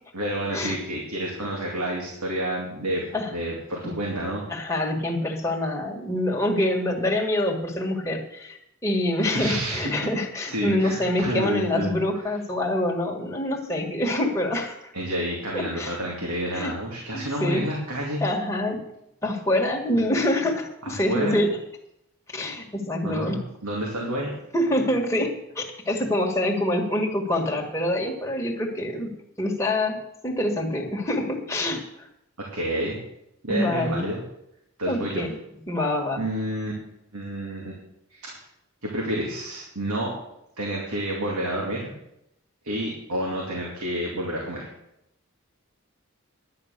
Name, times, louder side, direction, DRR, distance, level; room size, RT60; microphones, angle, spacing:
voice 1, 0.1-4.7 9.3-9.9 10.4-11.9 14.9-18.2 20.8-21.4 23.0-24.3 32.4-33.0 33.4-34.2 34.8-35.2 36.2-36.7 37.1-37.7 38.1-38.4 38.8-40.2 40.6-41.9 42.6-44.7, right 1 dB, 90° right, -2 dB, 2.6 m, -29 dB
voice 2, 4.5-14.9 15.5-16.0 16.5-16.8 17.1-17.6 18.2-18.8 19.2-21.5 22.3-23.4 24.5-29.1 29.4-32.1 33.5-34.1 34.9-35.4 35.7-36.2, left 1 dB, 15° left, 0 dB, 1.7 m, -26 dB
10.5 x 9.5 x 6.7 m, 0.82 s
head